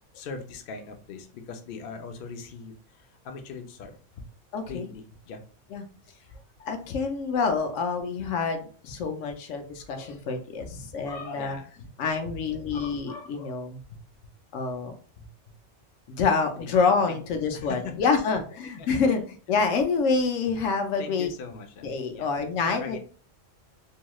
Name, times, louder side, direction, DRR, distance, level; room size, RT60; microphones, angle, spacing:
voice 1, 0.1-2.7 3.2-4.2 4.7-5.4 11.3-11.7 12.7-12.8 13.9-14.0 15.2-15.3 16.6-16.7 17.1-17.2 17.5-18.0 18.8-19.2 21.0-22.3 22.6-23.0, left 5 dB, 60° left, 5 dB, 0.6 m, -40 dB
voice 2, 4.5-4.9 5.7-5.8 6.6-11.6 12.0-13.8 14.5-14.9 16.1-19.2 19.5-21.3 21.8-23.0, left 5 dB, 85° left, 6 dB, 0.9 m, -27 dB
2.9 x 2.8 x 2.2 m, 0.41 s
omnidirectional pair, 1.3 m